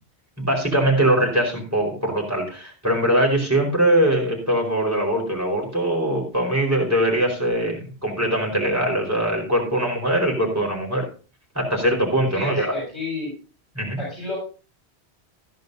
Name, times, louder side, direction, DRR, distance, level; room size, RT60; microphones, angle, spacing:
voice 1, 0.4-11.0 11.5-12.7 13.7-14.0, right 1 dB, 15° right, 0 dB, 4.7 m, -22 dB
voice 2, 12.3-13.4 14.0-14.4, left 2 dB, 85° left, -6 dB, 6.9 m, -30 dB
15.5 x 10.5 x 2.8 m, 0.35 s
omnidirectional pair, 1.1 m